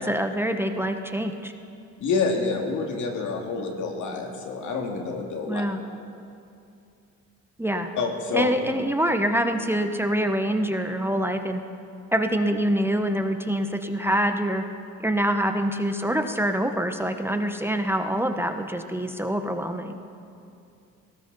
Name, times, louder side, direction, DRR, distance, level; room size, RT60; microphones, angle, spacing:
voice 1, 0.0-1.5 5.5-5.8 7.6-7.9 8.3-11.6 12.1-14.7 15.0-20.0, right 1 dB, 10° right, 6 dB, 0.9 m, -25 dB
voice 2, 2.0-5.6 8.0-8.5, left 4 dB, 75° left, 2 dB, 2.2 m, -27 dB
18.5 x 18.0 x 4.0 m, 2.6 s
cardioid pair, 90°, 30 cm